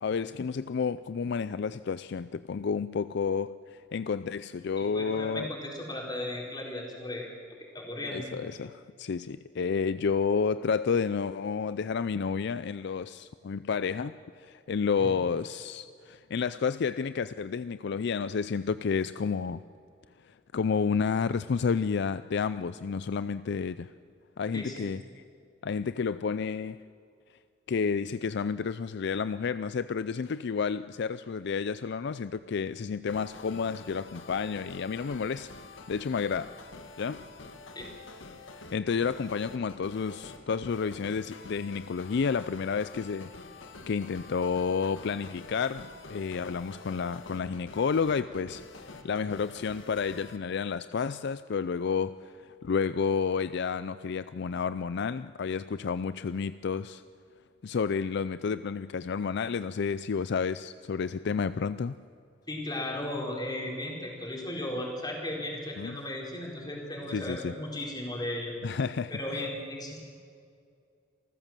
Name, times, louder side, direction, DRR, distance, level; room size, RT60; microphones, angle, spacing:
voice 1, 0.0-5.5 8.1-19.6 20.2-23.9 24.4-25.0 25.6-26.8 27.7-35.5 35.9-36.5 37.0-37.2 38.7-43.3 43.6-57.0 57.6-62.0 65.8-66.0 67.1-67.5 68.6-69.4, left 5 dB, 60° left, 14 dB, 0.4 m, -30 dB
voice 2, 4.8-8.3 15.0-15.1 24.5-24.9 37.7-37.9 62.5-68.6 69.1-70.1, left 1 dB, 20° left, -1 dB, 4.5 m, -36 dB
sound 1, 33.1-50.4, left 3 dB, 80° left, 1.6 m, -47 dB
27.5 x 14.5 x 7.5 m, 2.3 s
head